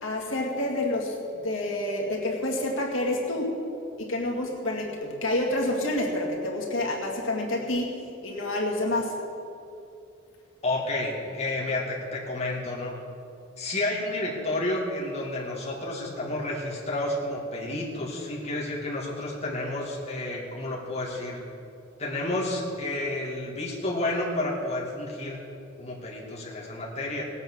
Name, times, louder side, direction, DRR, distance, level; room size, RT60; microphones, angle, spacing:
voice 1, 0.0-3.5 4.0-7.9 8.2-9.1, left 1 dB, 85° left, -2 dB, 2.2 m, -28 dB
voice 2, 10.6-13.0 13.6-21.4 22.0-25.4 25.8-27.2, left 2 dB, 35° left, -4 dB, 2.4 m, -30 dB
18.0 x 8.3 x 6.5 m, 2.7 s
head